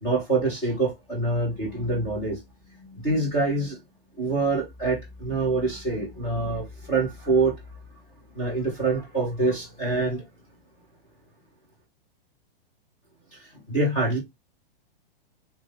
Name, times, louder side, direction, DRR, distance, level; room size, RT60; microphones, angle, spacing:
voice 1, 0.0-2.4 2.8-3.8 4.2-7.6 8.3-10.2 13.3-14.2, right 3 dB, 5° left, 0.3 m, -26 dB
3.9 x 2.3 x 3.1 m
supercardioid pair, 175°, 30 cm